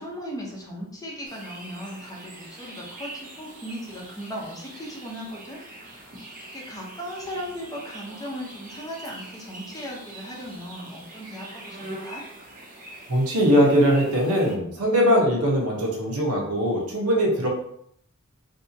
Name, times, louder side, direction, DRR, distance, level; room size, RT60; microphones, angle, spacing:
voice 1, 0.0-5.6 5.9-6.2 6.5-12.2, equal, 15° left, -2 dB, 0.7 m, -37 dB
sound 1, 1.2-14.5, right 1 dB, 40° right, 0.7 m, -43 dB
voice 2, 13.1-17.5, equal, 85° right, -1 dB, 1.0 m, -21 dB
3.4 x 2.8 x 2.7 m, 0.71 s
head